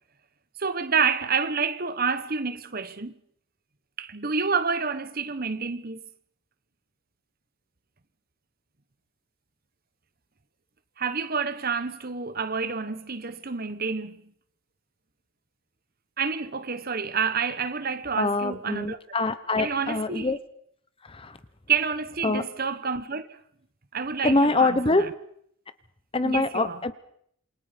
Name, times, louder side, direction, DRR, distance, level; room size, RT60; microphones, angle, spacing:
voice 1, 0.6-3.1 4.0-6.0 11.0-14.2 16.2-19.0 19.6-20.3 21.7-23.4 23.9-25.1 26.2-26.8, right 5 dB, 45° right, 1.1 m, -28 dB
voice 2, 18.2-20.4 21.0-21.4 22.2-22.4 24.2-25.1 26.1-26.9, left 2 dB, 25° left, 1.0 m, -24 dB
28.0 x 23.0 x 5.2 m
head